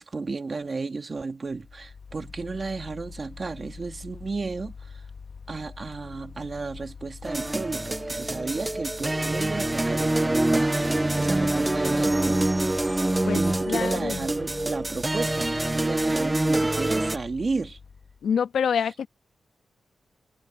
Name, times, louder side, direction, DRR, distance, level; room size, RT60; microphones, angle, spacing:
voice 1, 0.0-5.0 5.5-12.4 13.3-17.8, right 4 dB, 35° right, 2.2 m, -33 dB
Mechanical fan, 1.5-18.3, left 5 dB, 50° left, 1.4 m, -44 dB
sound 1, 7.2-17.2, right 2 dB, 15° right, 0.5 m, -25 dB
sound 2, 9.2-16.3, right 6 dB, 60° right, 5.7 m, -53 dB
voice 2, 13.2-14.3 18.2-19.1, left 7 dB, 90° left, 1.3 m, -27 dB
wide cardioid pair, 145°, 0 cm